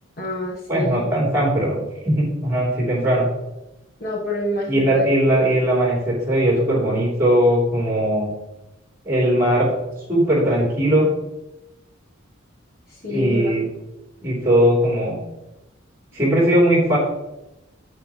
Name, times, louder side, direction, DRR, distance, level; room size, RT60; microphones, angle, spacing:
voice 1, 0.2-1.1 4.0-5.1 13.0-13.6, left 1 dB, 45° left, -2 dB, 1.3 m, -26 dB
voice 2, 0.7-3.3 4.7-8.3 9.0-9.7 10.1-11.1 13.1-13.7 14.2-15.2 16.1-17.0, right 1 dB, 10° right, -4 dB, 3.4 m, -19 dB
8.9 x 8.9 x 3.2 m, 0.98 s
head